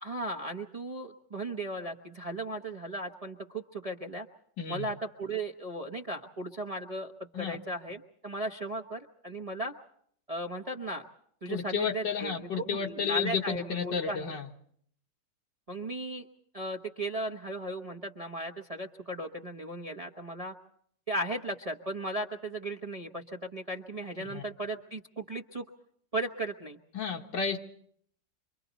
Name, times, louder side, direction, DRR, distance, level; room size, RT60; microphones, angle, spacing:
voice 1, 0.0-4.3 4.7-7.1 7.4-9.7 10.3-11.0 11.4-14.4 15.7-16.3 16.5-20.5 21.1-25.7 26.1-26.8, right 1 dB, 25° right, 2 dB, 0.9 m, -36 dB
voice 2, 11.5-14.5 24.3-24.4 26.9-27.6, left 6 dB, 75° left, 1 dB, 2.0 m, -32 dB
29.0 x 24.5 x 4.1 m, 0.65 s
omnidirectional pair, 1.9 m